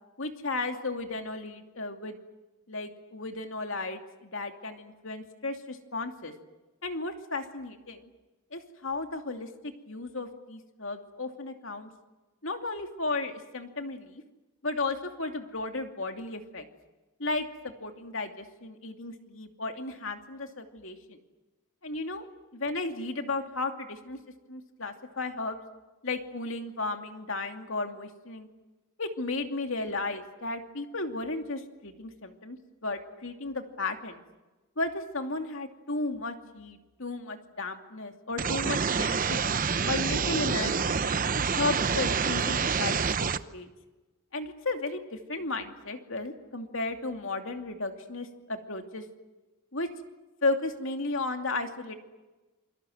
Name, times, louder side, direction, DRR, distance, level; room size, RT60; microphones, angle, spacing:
voice 1, 0.2-2.2 2.7-6.3 6.8-8.1 8.5-11.9 12.4-14.2 14.6-16.7 17.2-21.2 21.8-24.2 24.5-25.6 26.0-28.5 29.0-34.2 34.8-39.4 39.9-41.0 41.5-43.7 44.3-49.0 49.7-49.9 50.4-52.0, left 3 dB, 65° left, 5 dB, 2.7 m, -34 dB
sound 1, 38.4-43.4, right 5 dB, 40° right, 0.8 m, -27 dB
28.0 x 24.0 x 8.0 m, 1.1 s
head